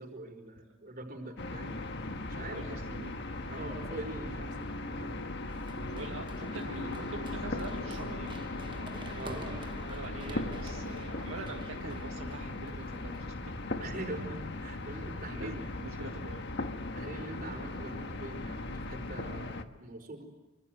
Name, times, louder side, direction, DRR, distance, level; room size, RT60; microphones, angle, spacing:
voice 1, 0.0-1.8 2.2-2.8 3.5-5.2 5.9-6.2 9.1-9.5 13.8-15.6 16.9-20.2, right 1 dB, 40° right, 5 dB, 4.9 m, -43 dB
sound 1, 1.4-19.6, left 2 dB, 55° left, 1.4 m, -38 dB
voice 2, 2.5-3.2 5.9-13.3 14.9-16.4, right 2 dB, 75° right, 2 dB, 1.8 m, -45 dB
Run, 5.5-13.2, right 2 dB, 25° right, 1.2 m, -50 dB
25.5 x 25.5 x 8.1 m, 1.1 s
head